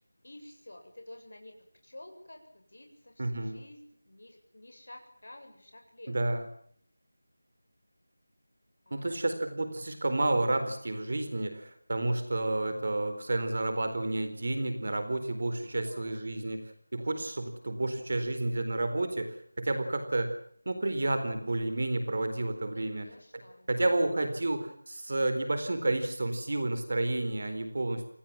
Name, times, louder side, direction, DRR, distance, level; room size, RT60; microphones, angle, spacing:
voice 1, 0.2-1.6 1.8-6.3 8.9-9.3 15.6-16.2 22.7-23.7, left 1 dB, 55° left, 3 dB, 7.7 m, -51 dB
voice 2, 3.2-3.6 6.1-6.4 8.9-16.6 16.9-20.3 20.7-23.1 23.7-28.1, right 2 dB, 35° right, 9 dB, 4.2 m, -30 dB
28.0 x 20.5 x 7.4 m, 0.65 s
figure-of-eight pair, 180°, 0 cm